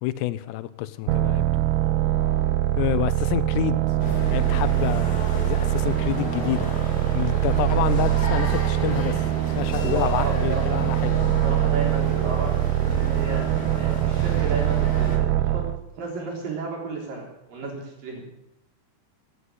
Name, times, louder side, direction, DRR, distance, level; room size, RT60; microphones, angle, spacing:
voice 1, 0.0-1.7 2.8-3.8 4.3-6.7 7.1-9.2 9.6-11.2, left 15 dB, 90° left, 15 dB, 2.9 m, -28 dB
sound 1, 1.1-15.8, right 14 dB, 80° right, 2.3 m, -23 dB
sound 2, 4.0-15.2, left 3 dB, 30° left, 2.1 m, -34 dB
voice 2, 9.8-10.8 11.4-15.6 16.0-18.3, right 3 dB, 55° right, -1 dB, 5.2 m, -33 dB
16.5 x 9.7 x 7.9 m, 0.84 s
omnidirectional pair, 4.8 m